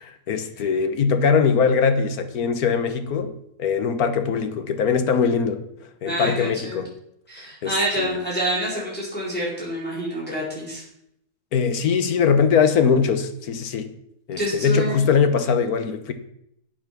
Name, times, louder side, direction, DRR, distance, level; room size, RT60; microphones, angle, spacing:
voice 1, 0.1-3.3 3.6-6.9 7.6-8.2 11.5-13.9 14.3-16.1, left 6 dB, 65° left, 9 dB, 1.5 m, -21 dB
voice 2, 6.0-6.8 7.3-10.8 14.4-15.0, right 1 dB, 5° left, -7 dB, 4.3 m, -27 dB
8.9 x 8.7 x 6.0 m, 0.76 s
omnidirectional pair, 1.7 m